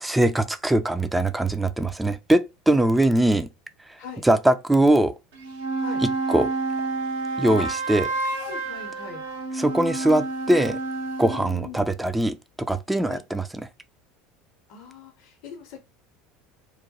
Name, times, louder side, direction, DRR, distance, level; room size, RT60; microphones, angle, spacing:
voice 1, 0.0-3.5 4.2-5.1 6.0-6.5 7.4-8.1 9.6-10.8 11.2-13.5, right 1 dB, 10° right, 0.4 m, -21 dB
sound 1, 5.3-11.5, right 3 dB, 75° right, 0.9 m, -29 dB
voice 2, 8.4-9.2 11.3-11.8 13.0-13.2 14.7-15.8, left 6 dB, 60° left, 0.7 m, -40 dB
3.0 x 2.2 x 2.8 m
hypercardioid pair, 70°, 0 cm